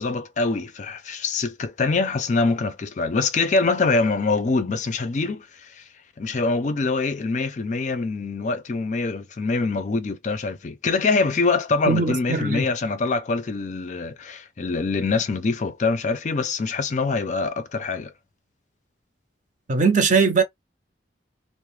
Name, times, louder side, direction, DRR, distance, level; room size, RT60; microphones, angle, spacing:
voice 1, 0.0-5.8 6.2-18.1, left 3 dB, 40° left, 0.4 m, -24 dB
voice 2, 11.9-12.7 19.7-20.4, right 5 dB, 45° right, 0.6 m, -20 dB
2.4 x 2.0 x 3.0 m
head